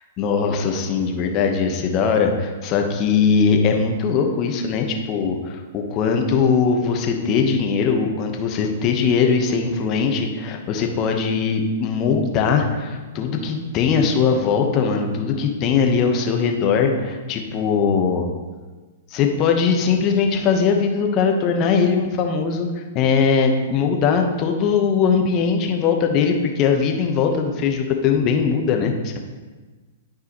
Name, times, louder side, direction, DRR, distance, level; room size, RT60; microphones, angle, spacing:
voice 1, 0.2-18.3 19.1-22.7 22.9-29.2, left 5 dB, 35° left, 4 dB, 1.0 m, -20 dB
11.5 x 4.7 x 3.0 m, 1.3 s
hypercardioid pair, 115°, 0 cm